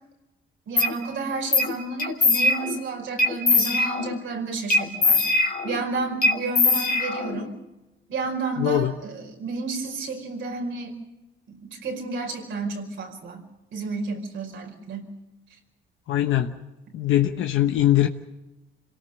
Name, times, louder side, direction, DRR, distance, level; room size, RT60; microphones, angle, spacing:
voice 1, 0.7-7.5 8.1-11.0 11.5-13.4 13.7-15.1, right 3 dB, 75° right, 2 dB, 5.2 m, -31 dB
sound 1, 0.8-0.9 1.5-1.7 2.0-2.8 3.2-4.2 4.7-5.8 6.2-7.5, left 3 dB, 45° left, 3.0 m, -21 dB
voice 2, 8.6-8.9 16.1-16.7 16.9-18.1, left 13 dB, 80° left, 5 dB, 1.1 m, -21 dB
27.0 x 18.0 x 6.6 m, 1.0 s
cardioid pair, 90°, 20 cm